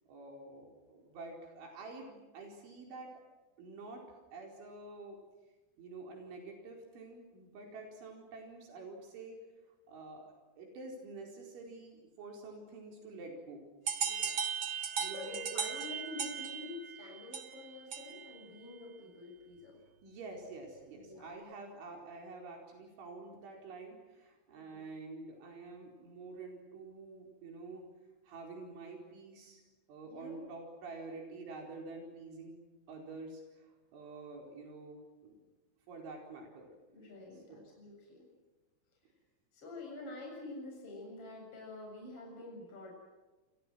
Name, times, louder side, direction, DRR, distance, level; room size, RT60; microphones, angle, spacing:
voice 1, 0.1-3.1 3.6-5.2 5.8-9.4 9.9-13.7 15.0-15.8 20.0-27.8 28.2-29.6 29.9-32.6 32.9-35.4 35.9-36.7 37.5-37.6, right 3 dB, 80° right, 1 dB, 6.9 m, -48 dB
sound 1, 13.9-18.4, right 6 dB, 40° right, 2.6 m, -37 dB
voice 2, 14.0-14.5 15.0-19.8 20.9-21.2 24.6-24.8 30.0-30.4 36.9-38.3 39.5-42.9, left 2 dB, 30° left, -1 dB, 8.1 m, -47 dB
29.5 x 29.0 x 6.3 m, 1.2 s
omnidirectional pair, 5.4 m